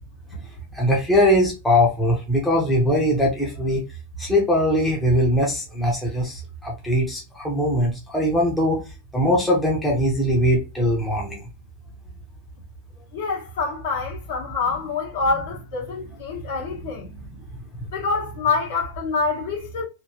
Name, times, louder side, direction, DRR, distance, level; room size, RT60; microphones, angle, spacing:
voice 1, 0.7-3.8 4.2-8.8 9.1-11.4 17.3-17.4, equal, 5° left, 0.7 m, -21 dB
voice 2, 13.1-17.1 17.9-19.9, left 4 dB, 60° left, 1.3 m, -26 dB
2.9 x 2.7 x 2.8 m
supercardioid pair, 175°, 0 cm